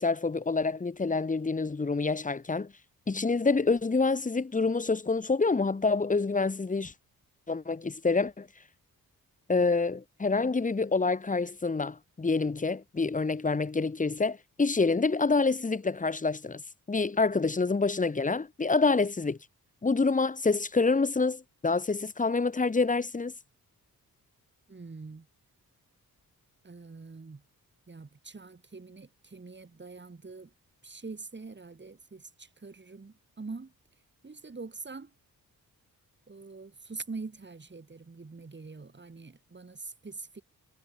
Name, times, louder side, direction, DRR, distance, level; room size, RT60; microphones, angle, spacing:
voice 1, 0.0-2.7 3.1-6.9 7.5-8.5 9.5-16.6 16.9-19.4 19.8-23.3, left 4 dB, 20° left, 1.2 m, -27 dB
voice 2, 24.7-25.3 26.6-27.4 27.9-30.5 30.8-33.7 34.2-35.1 36.3-40.4, right 4 dB, 30° right, 5.6 m, -44 dB
wide cardioid pair, 110°, 36 cm